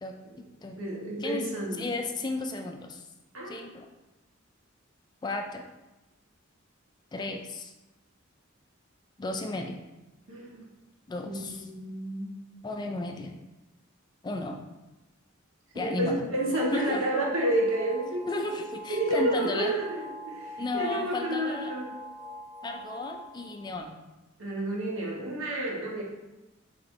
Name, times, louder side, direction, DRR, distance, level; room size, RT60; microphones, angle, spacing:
voice 1, 0.0-0.8 1.2-3.1 3.5-3.9 5.2-5.7 7.1-7.7 9.2-9.8 11.1-11.7 12.6-13.3 14.2-14.6 15.7-16.3 16.7-17.1 18.3-19.7 20.6-21.7 22.6-24.0, left 2 dB, 20° left, 4 dB, 0.3 m, -34 dB
voice 2, 0.8-1.9 3.3-3.8 10.3-10.7 11.2-12.5 15.7-18.4 18.9-21.9 24.4-26.0, right 1 dB, 75° right, -3 dB, 1.2 m, -30 dB
sound 1, 16.3-23.9, equal, 50° right, 0.5 m, -44 dB
5.7 x 3.3 x 2.6 m, 1.0 s
head